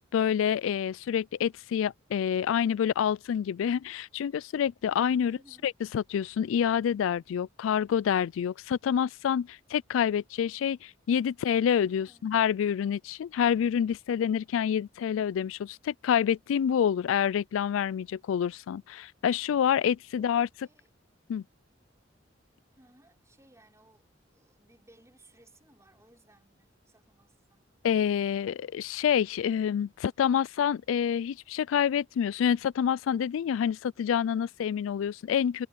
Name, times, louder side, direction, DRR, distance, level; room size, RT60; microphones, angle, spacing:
voice 1, 0.1-5.4 5.6-20.5 21.3-21.4 27.8-35.7, left 8 dB, 90° left, 0.3 m, -27 dB
voice 2, 5.2-5.7 11.8-12.4 20.2-20.9 22.7-27.7, right 1 dB, 15° right, 5.7 m, -61 dB
head